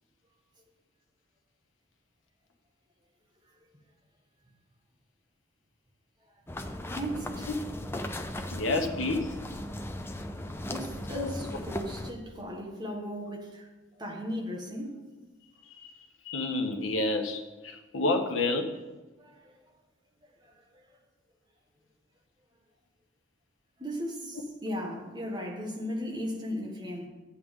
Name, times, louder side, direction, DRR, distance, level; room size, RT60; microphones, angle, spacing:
sound 1, 6.5-12.1, left 1 dB, 10° left, 0.5 m, -37 dB
voice 1, 6.9-7.5 10.7-13.7 14.0-15.0 19.2-19.5 20.4-20.6 23.8-27.1, equal, 20° right, 1.4 m, -36 dB
voice 2, 8.5-9.3 11.1-11.3 15.7-15.9 16.2-18.7, left 2 dB, 80° left, 1.0 m, -29 dB
11.5 x 8.5 x 3.7 m
head